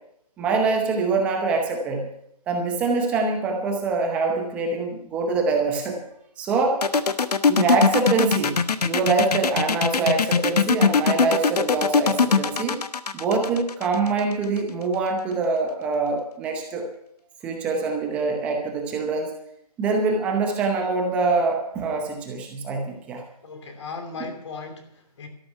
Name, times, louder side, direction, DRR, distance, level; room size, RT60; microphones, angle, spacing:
voice 1, 0.4-2.1 2.5-6.0 6.4-6.8 7.5-8.6 8.8-12.8 13.1-16.8 17.4-19.3 19.8-23.2, right 4 dB, 5° right, 1 dB, 0.8 m, -24 dB
sound 1, 6.8-14.6, left 5 dB, 70° left, 1.1 m, -21 dB
voice 2, 23.4-25.3, left 4 dB, 45° left, 6 dB, 2.9 m, -37 dB
13.0 x 12.0 x 5.7 m, 0.75 s
hypercardioid pair, 165°, 21 cm